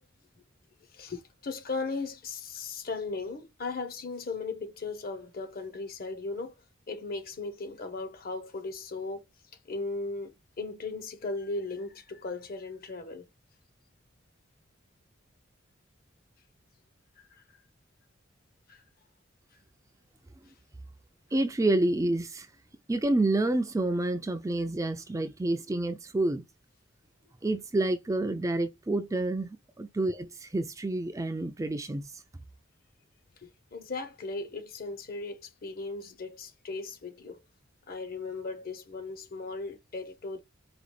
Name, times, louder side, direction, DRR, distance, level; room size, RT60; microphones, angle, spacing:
voice 1, 0.9-6.5 6.9-9.2 9.6-13.3 17.2-17.4 18.7-18.8 33.4-37.4 37.9-40.4, left 3 dB, 50° left, 0.9 m, -37 dB
voice 2, 21.3-22.5 22.9-26.4 27.4-32.1, right 2 dB, 15° right, 0.4 m, -28 dB
4.9 x 2.4 x 3.3 m
head